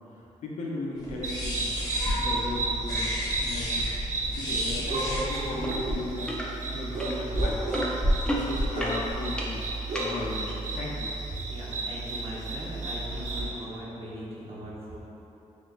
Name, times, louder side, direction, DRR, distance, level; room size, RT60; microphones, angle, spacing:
voice 1, 0.0-1.8 2.0-7.9 8.3-9.7 10.0-11.1, left 2 dB, 85° left, -3 dB, 0.6 m, -37 dB
sound 1, 1.0-5.9, equal, 30° left, 1.1 m, -33 dB
sound 2, 1.2-13.5, right 2 dB, 85° right, 0.8 m, -32 dB
sound 3, 5.6-5.8 6.1-6.5 7.0-10.1 10.8-10.9, equal, 5° left, 0.4 m, -29 dB
voice 2, 11.3-15.0, right 1 dB, 55° right, -7 dB, 1.1 m, -39 dB
6.2 x 2.4 x 2.4 m, 2.9 s
wide cardioid pair, 125°, 12 cm